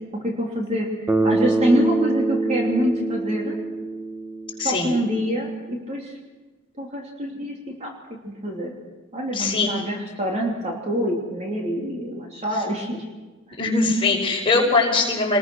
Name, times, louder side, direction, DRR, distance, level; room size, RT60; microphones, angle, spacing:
voice 1, 0.1-3.5 4.6-6.1 6.8-7.9 8.2-8.7 9.1-13.0, equal, 30° right, -1 dB, 3.2 m, -26 dB
Bass guitar, 1.1-5.1, right 3 dB, 10° right, 1.3 m, -24 dB
voice 2, 4.6-4.9 9.3-9.7 13.6-15.4, left 3 dB, 25° left, -1 dB, 5.5 m, -21 dB
27.0 x 21.5 x 6.4 m, 1.2 s
head